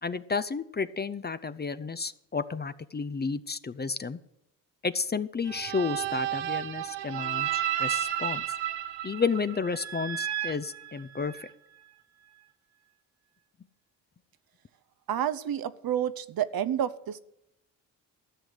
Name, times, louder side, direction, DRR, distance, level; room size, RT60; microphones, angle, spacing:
voice 1, 0.0-4.2 4.8-8.4 9.0-11.5, left 5 dB, 25° left, 14 dB, 0.6 m, -32 dB
sound 1, 5.5-11.5, right 11 dB, 75° right, 1.1 m, -32 dB
voice 2, 15.1-17.2, right 10 dB, 55° right, 13 dB, 0.8 m, -29 dB
13.5 x 6.3 x 7.7 m, 0.84 s
hypercardioid pair, 50°, 42 cm